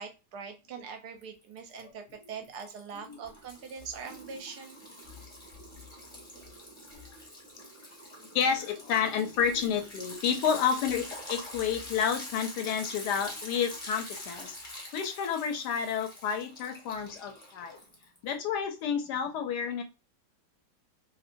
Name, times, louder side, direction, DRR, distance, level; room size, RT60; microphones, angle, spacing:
voice 1, 0.0-4.8, right 6 dB, 70° right, 6 dB, 1.0 m, -42 dB
Liquid, 1.2-1.8 2.1-18.3, left 1 dB, 20° left, 0.8 m, -45 dB
voice 2, 8.3-14.6 14.9-17.8 18.2-19.8, left 7 dB, 75° left, 7 dB, 1.1 m, -30 dB
2.9 x 2.6 x 2.5 m, 0.29 s
omnidirectional pair, 1.9 m